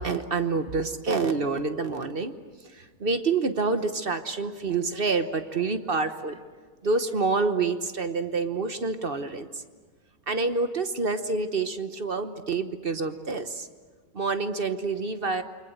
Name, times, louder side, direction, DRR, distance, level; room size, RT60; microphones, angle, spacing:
voice 1, 0.0-2.4 2.6-6.4 6.8-9.6 10.3-13.7 14.1-15.4, right 4 dB, 40° right, 9 dB, 1.1 m, -27 dB
29.0 x 24.5 x 8.0 m, 1.5 s
omnidirectional pair, 1.8 m